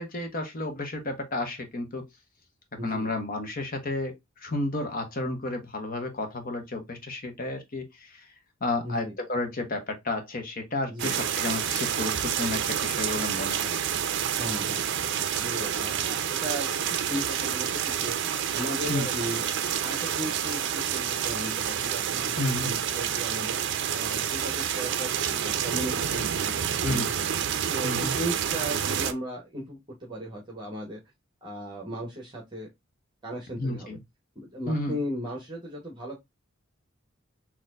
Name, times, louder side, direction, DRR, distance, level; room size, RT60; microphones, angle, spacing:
voice 1, 0.0-2.1 2.8-8.3 8.6-13.8 18.9-19.1 22.4-22.7 26.8-27.2 27.8-28.1 33.6-34.0 34.7-35.0, left 2 dB, 45° left, 1.0 m, -32 dB
voice 2, 2.8-3.1 8.8-9.1 10.9-11.2 14.3-14.8 15.4-18.2 18.5-23.6 23.9-27.0 27.7-31.0 31.4-32.7 33.2-34.0 34.3-36.2, equal, 20° right, 1.1 m, -36 dB
sound 1, 11.0-29.1, right 8 dB, 55° right, 0.5 m, -28 dB
4.2 x 3.0 x 2.5 m
head